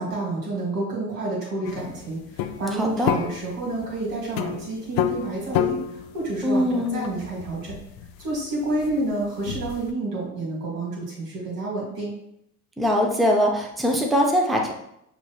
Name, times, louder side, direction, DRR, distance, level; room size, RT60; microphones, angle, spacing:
voice 1, 0.0-7.7 8.2-12.1, right 2 dB, 85° right, -4 dB, 1.6 m, -29 dB
sound 1, 1.6-9.9, left 10 dB, 50° left, 0.5 m, -31 dB
voice 2, 2.8-3.1 6.4-7.1 12.8-14.7, equal, ahead, 1 dB, 0.6 m, -22 dB
6.3 x 3.1 x 2.3 m, 0.77 s
hypercardioid pair, 60°, 46 cm